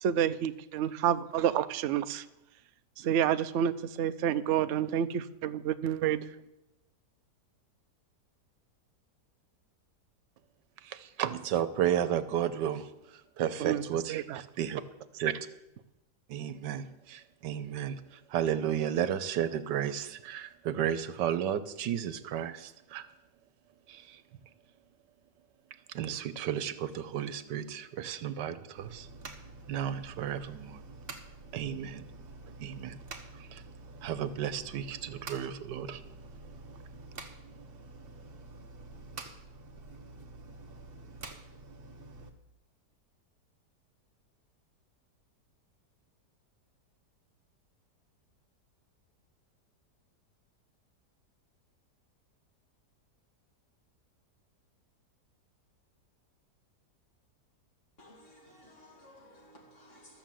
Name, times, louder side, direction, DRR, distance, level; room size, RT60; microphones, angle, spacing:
voice 1, 0.0-2.2 3.0-6.3 13.6-13.8 14.1-14.4, right 10 dB, 65° right, 11 dB, 0.7 m, -29 dB
voice 2, 10.8-14.8 15.1-15.5 16.3-23.1 23.9-24.2 25.9-29.1 29.7-30.8 31.5-32.0 32.6-33.0 33.3-33.6 34.0-36.0, right 10 dB, 85° right, 13 dB, 1.4 m, -33 dB
sound 1, 28.8-42.3, right 3 dB, 40° right, 1.2 m, -48 dB
voice 3, 58.0-60.2, left 1 dB, 45° left, 0 dB, 2.7 m, -56 dB
13.5 x 7.0 x 7.5 m, 0.92 s
omnidirectional pair, 1.8 m